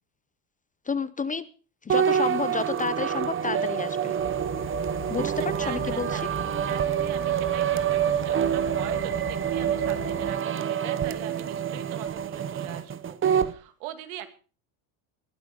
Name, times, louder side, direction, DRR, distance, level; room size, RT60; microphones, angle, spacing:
voice 1, 0.9-1.5 1.8-4.1 5.1-5.3 5.6-6.3, left 5 dB, 15° left, 17 dB, 0.6 m, -30 dB
sound 1, 1.9-13.5, right 9 dB, 25° right, 0.8 m, -27 dB
sound 2, 4.2-10.3, left 7 dB, 45° left, 4.5 m, -42 dB
voice 2, 5.4-6.3 6.7-14.3, right 12 dB, 85° right, 9 dB, 2.5 m, -41 dB
21.0 x 9.4 x 5.1 m, 0.38 s
cardioid pair, 120°, 47 cm